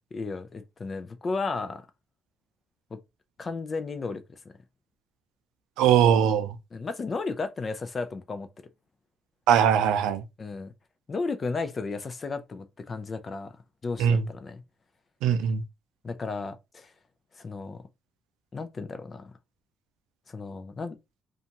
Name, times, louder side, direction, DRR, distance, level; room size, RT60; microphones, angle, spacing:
voice 1, 0.1-1.9 2.9-3.0 3.4-4.2 6.7-8.5 10.4-10.7 11.1-13.5 13.8-14.6 16.0-16.9 17.4-17.8 18.5-19.3 20.3-21.0, left 4 dB, 40° left, 0.5 m, -34 dB
voice 2, 5.8-6.6 9.5-10.2 14.0-14.2 15.2-15.6, right 8 dB, 85° right, 0.4 m, -21 dB
2.5 x 2.3 x 2.8 m
supercardioid pair, 65°, 0 cm